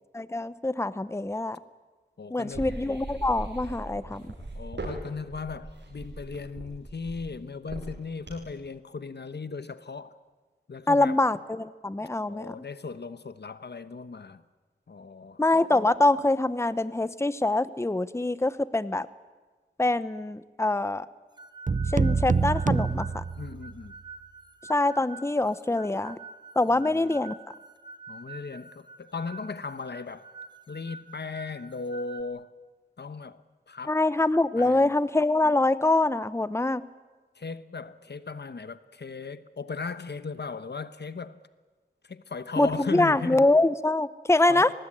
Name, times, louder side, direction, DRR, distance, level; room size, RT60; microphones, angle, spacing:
voice 1, 0.1-1.6 2.3-4.3 10.9-12.5 15.4-19.1 19.8-21.1 21.9-23.2 24.7-26.2 26.6-27.3 33.9-36.8 42.6-44.7, left 2 dB, 15° left, 0.8 m, -24 dB
voice 2, 2.2-2.7 3.7-3.8 4.5-10.2 10.7-11.2 12.3-14.4 14.9-15.4 23.4-24.0 26.7-27.2 28.1-30.3 30.7-32.5 33.0-33.4 33.7-34.0 34.6-34.9 37.3-41.4 42.0-43.5 44.5-44.7, left 4 dB, 70° left, 1.0 m, -37 dB
sound 1, 2.5-8.6, right 2 dB, 85° right, 7.8 m, -39 dB
sound 2, 21.4-32.2, right 4 dB, 25° right, 1.4 m, -47 dB
sound 3, 21.7-23.9, right 4 dB, 45° right, 0.7 m, -26 dB
24.0 x 19.5 x 9.9 m
wide cardioid pair, 60°, 18 cm